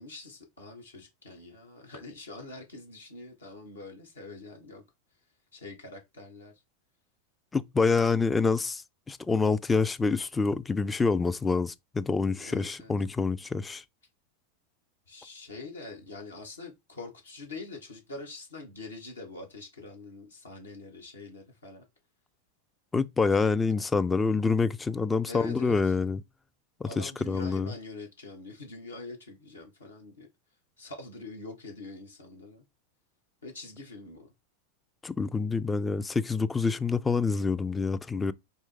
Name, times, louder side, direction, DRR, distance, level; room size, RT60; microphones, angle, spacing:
voice 1, 0.0-4.8 5.5-6.5 12.4-12.9 15.1-21.8 23.3-23.5 25.3-25.9 26.8-30.3 30.8-32.6 33.4-34.3, left 3 dB, 75° left, 1.4 m, -44 dB
voice 2, 7.5-8.8 9.1-13.8 22.9-26.2 26.8-27.7 35.0-38.3, left 4 dB, 10° left, 0.3 m, -27 dB
4.3 x 3.1 x 3.4 m
figure-of-eight pair, 90°, 0 cm